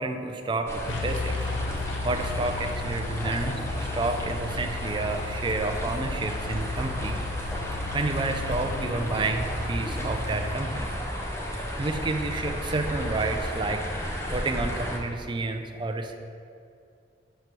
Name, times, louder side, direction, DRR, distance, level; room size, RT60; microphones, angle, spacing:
voice 1, 0.0-1.4 2.0-7.1 7.9-10.9 11.8-16.2, right 3 dB, 25° right, 6 dB, 0.3 m, -30 dB
sound 1, 0.7-15.0, equal, 15° left, 0.6 m, -33 dB
sound 2, 0.9-10.6, left 3 dB, 80° left, 0.5 m, -35 dB
6.5 x 5.6 x 3.1 m, 2.4 s
head